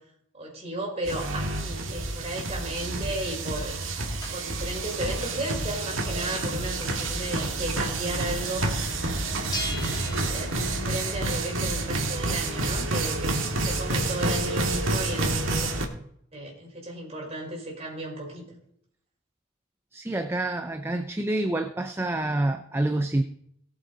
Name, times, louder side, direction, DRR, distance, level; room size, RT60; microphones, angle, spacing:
voice 1, 0.3-3.7 4.3-8.6 9.3-15.7 16.3-18.6, right 1 dB, 30° right, -1 dB, 4.7 m, -34 dB
sound 1, 1.1-15.9, right 2 dB, 75° right, 2.0 m, -29 dB
sound 2, 2.7-8.2 8.6-8.7 8.9-13.8, left 1 dB, 20° left, 2.5 m, -43 dB
sound 3, 4.7-10.9, equal, 70° left, 2.4 m, -39 dB
voice 2, 19.9-23.2, right 1 dB, 10° right, 6 dB, 0.5 m, -27 dB
17.5 x 7.8 x 3.9 m, 0.70 s
head